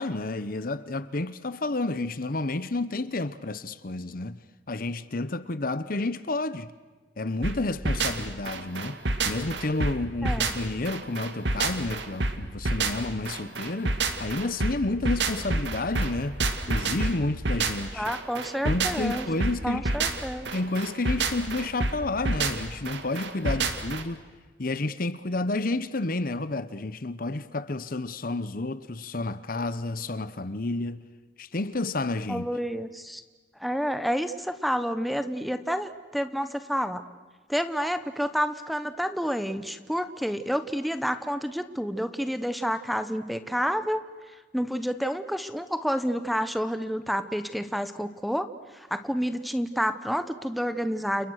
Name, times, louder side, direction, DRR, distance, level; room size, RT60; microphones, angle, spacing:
voice 1, 0.0-4.4 4.7-6.7 7.2-9.0 9.2-16.4 16.7-18.1 18.6-20.0 20.5-24.2 24.6-31.0 31.4-32.5, left 2 dB, 50° left, 0.9 m, -30 dB
sound 1, 7.4-24.0, right 3 dB, 80° right, 2.2 m, -29 dB
voice 2, 10.2-10.6 17.9-19.3 19.6-20.5 32.3-33.2 33.6-37.0 37.5-44.0 44.5-48.5 48.7-51.3, equal, ahead, 1.1 m, -29 dB
30.0 x 29.5 x 6.5 m
head